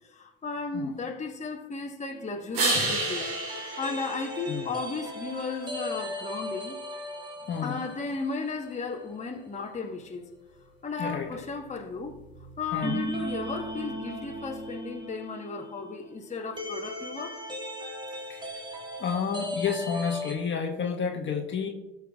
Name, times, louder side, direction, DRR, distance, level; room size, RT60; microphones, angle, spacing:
voice 1, 0.0-3.3 3.8-6.8 7.6-10.3 10.8-12.2 12.6-17.4, left 4 dB, 25° left, 2 dB, 1.2 m, -35 dB
sound 1, 2.1-8.8 9.1-9.2 12.8-20.3, equal, 15° right, 1.6 m, -37 dB
sound 2, 2.5-5.1 10.9-14.8, right 3 dB, 65° right, 3.1 m, -34 dB
voice 2, 7.5-7.8 11.0-11.4 12.7-13.0 18.3-18.6 19.0-21.7, left 6 dB, 40° left, 2 dB, 1.3 m, -30 dB
18.0 x 6.0 x 2.4 m, 1.0 s
hypercardioid pair, 60°, 30 cm